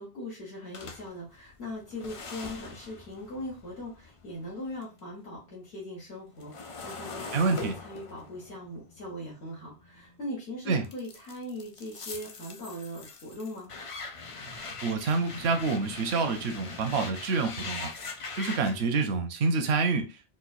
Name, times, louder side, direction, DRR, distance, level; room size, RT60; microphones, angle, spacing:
voice 1, 0.0-13.7, left 1 dB, 85° left, 1.6 m, -40 dB
sound 1, 0.7-5.0 5.3-10.3 10.8-18.8, left 4 dB, 45° left, 0.4 m, -42 dB
voice 2, 7.3-7.7 10.7-10.9 14.8-17.9 18.4-20.2, right 4 dB, 80° right, 0.9 m, -27 dB
4.2 x 2.2 x 2.3 m
omnidirectional pair, 1.1 m